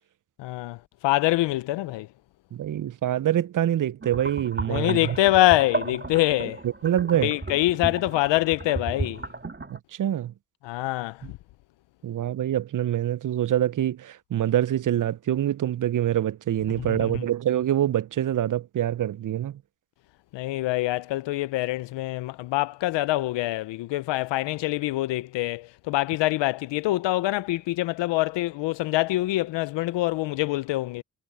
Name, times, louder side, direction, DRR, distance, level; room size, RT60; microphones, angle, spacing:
voice 1, 0.4-2.1 4.7-6.6 7.2-9.2 10.6-11.4 16.8-17.2 20.3-31.0, left 17 dB, 90° left, 0.6 m, -25 dB
voice 2, 2.5-5.0 6.8-7.3 9.7-10.3 11.2-11.3 12.0-19.6, right 11 dB, 50° right, 0.6 m, -25 dB
sound 1, 4.0-9.8, right 3 dB, 25° right, 3.3 m, -34 dB
supercardioid pair, 50°, 42 cm